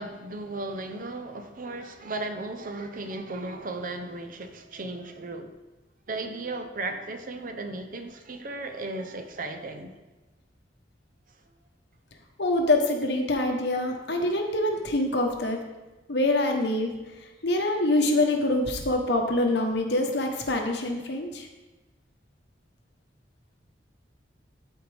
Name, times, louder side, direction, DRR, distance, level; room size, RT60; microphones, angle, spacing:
voice 1, 0.0-5.5 6.1-9.9, right 2 dB, 50° right, 0.7 m, -35 dB
voice 2, 12.4-15.6 16.1-16.9 17.4-21.5, left 1 dB, 65° left, 1.1 m, -25 dB
13.0 x 4.4 x 3.5 m
head